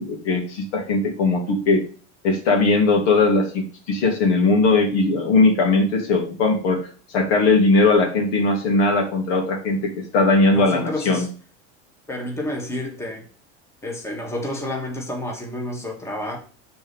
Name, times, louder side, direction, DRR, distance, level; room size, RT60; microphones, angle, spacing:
voice 1, 0.0-1.8 2.2-6.8 7.1-11.3, left 3 dB, 80° left, 2.4 m, -19 dB
voice 2, 10.5-11.3 12.1-13.3 13.8-16.4, left 1 dB, 10° left, 1.5 m, -30 dB
5.9 x 4.2 x 5.3 m
supercardioid pair, 130°, 34 cm